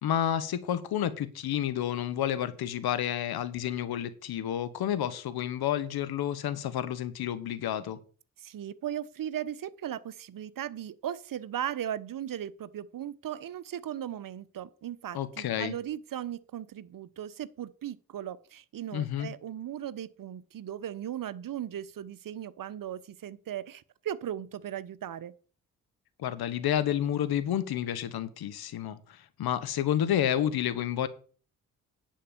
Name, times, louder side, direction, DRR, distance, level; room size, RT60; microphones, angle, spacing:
voice 1, 0.0-8.0 15.1-15.7 18.9-19.3 26.2-31.1, left 10 dB, 70° left, 1.3 m, -30 dB
voice 2, 8.4-25.3, right 10 dB, 55° right, 0.9 m, -37 dB
10.0 x 5.5 x 7.1 m
hypercardioid pair, 40°, 40 cm